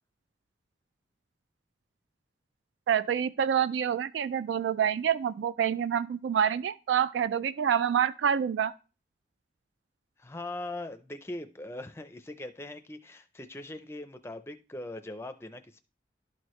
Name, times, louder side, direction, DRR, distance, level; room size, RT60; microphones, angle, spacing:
voice 1, 2.9-8.7, right 8 dB, 85° right, 0.3 m, -27 dB
voice 2, 10.2-15.8, left 2 dB, 15° left, 0.4 m, -41 dB
11.5 x 4.6 x 3.1 m
head